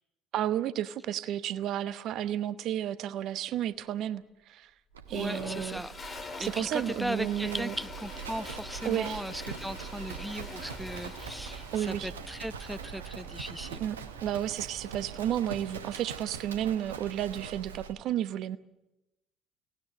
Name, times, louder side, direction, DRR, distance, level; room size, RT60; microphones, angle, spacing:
voice 1, 0.3-4.7 5.1-5.8 6.1-7.7 8.8-9.2 11.7-12.1 13.8-14.0 14.2-18.6, right 11 dB, 55° right, 15 dB, 0.9 m, -32 dB
Livestock farm animals working animals, 4.9-18.0, right 7 dB, 80° right, 1.1 m, -43 dB
Toilet flush, 5.1-12.3, left 3 dB, 30° left, 4.0 m, -44 dB
voice 2, 5.1-5.9 6.4-13.8, equal, 5° right, 15 dB, 0.8 m, -37 dB
sound 1, 10.6-16.0, right 4 dB, 30° right, 1.1 m, -50 dB
24.0 x 18.5 x 8.5 m, 0.95 s
figure-of-eight pair, 55°, 0 cm